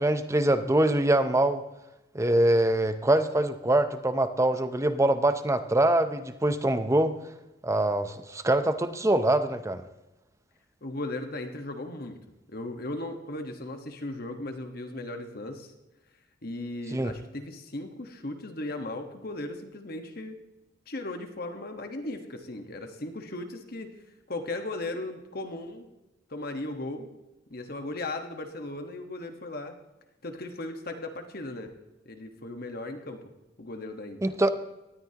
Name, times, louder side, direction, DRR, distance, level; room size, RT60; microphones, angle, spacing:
voice 1, 0.0-1.6 2.1-7.1 7.6-9.8 16.9-17.1 34.2-34.5, right 1 dB, 15° right, 10 dB, 0.6 m, -24 dB
voice 2, 10.8-12.2 12.5-15.7 16.4-20.4 20.9-23.9 24.3-25.9 26.3-27.1 27.5-29.7 30.2-31.7 32.0-33.2 33.6-34.2, left 2 dB, 50° left, 6 dB, 1.4 m, -37 dB
18.5 x 13.0 x 2.9 m, 1.0 s
head